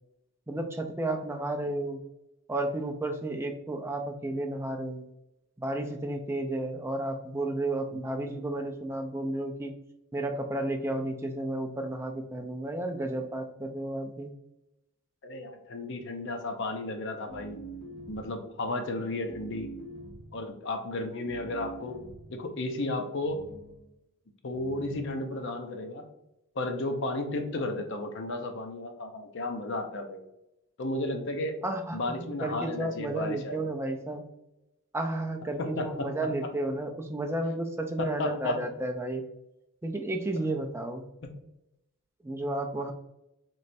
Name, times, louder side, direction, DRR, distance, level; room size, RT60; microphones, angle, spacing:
voice 1, 0.5-2.0 2.5-5.1 5.6-9.7 10.1-14.3 31.6-34.2 34.9-39.2 39.8-41.0 42.2-42.9, right 1 dB, 10° right, 4 dB, 0.3 m, -32 dB
voice 2, 15.2-17.6 18.1-19.7 20.3-22.0 22.3-23.4 24.4-26.1 26.5-30.2 30.8-31.6 31.9-33.6 35.6-36.5 38.0-38.6 41.2-41.3, left 2 dB, 55° left, 5 dB, 0.6 m, -33 dB
sound 1, 17.3-18.4 19.3-20.4 21.3-22.4 23.2-23.8 24.5-25.1, right 2 dB, 35° left, 1.3 m, -45 dB
3.2 x 3.1 x 4.1 m, 0.89 s
head